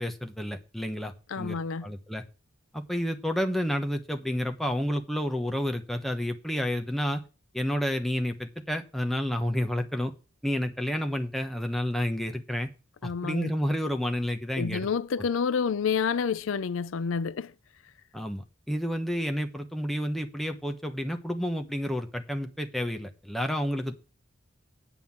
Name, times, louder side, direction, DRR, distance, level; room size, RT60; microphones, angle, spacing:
voice 1, 0.0-2.2 2.7-7.2 7.5-10.1 10.4-12.7 13.0-14.9 18.1-24.0, equal, ahead, 1.0 m, -30 dB
voice 2, 1.3-1.9 13.0-13.5 14.6-17.5, left 6 dB, 85° left, 0.5 m, -29 dB
9.2 x 5.7 x 7.2 m
head